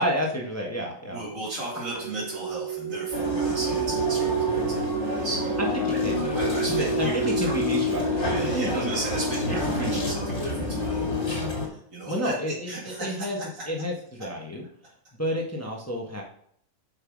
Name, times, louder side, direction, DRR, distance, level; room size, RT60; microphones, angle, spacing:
voice 1, 0.0-1.2 5.8-6.4 6.7-8.9 9.7-10.1 12.1-12.7 13.0-13.4 13.7-14.6 15.2-16.2, equal, 10° left, -1 dB, 1.3 m, -30 dB
voice 2, 1.1-5.5 5.9-6.0 6.3-7.8 8.1-13.3, right 2 dB, 65° right, -7 dB, 2.7 m, -35 dB
sound 1, 1.5-9.3, right 10 dB, 25° right, 2.4 m, -31 dB
sound 2, 3.1-11.7, left 2 dB, 55° left, 2.4 m, -28 dB
7.9 x 5.6 x 4.8 m, 0.65 s
omnidirectional pair, 1.4 m